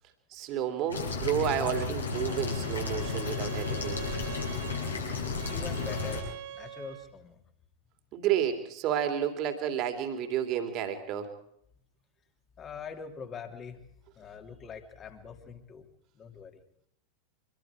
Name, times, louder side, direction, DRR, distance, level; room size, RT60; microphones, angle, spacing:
voice 1, 0.3-4.0 8.1-11.3, right 9 dB, 40° right, 6 dB, 2.8 m, -31 dB
sound 1, 0.9-6.2, left 4 dB, 75° left, 6.6 m, -33 dB
Bowed string instrument, 2.0-7.2, right 12 dB, 55° right, 1.7 m, -45 dB
voice 2, 5.5-7.4 12.6-13.8 14.2-15.9 16.1-16.6, left 6 dB, 25° left, 6 dB, 2.7 m, -43 dB
25.0 x 22.0 x 4.9 m, 0.72 s
figure-of-eight pair, 90°, 0 cm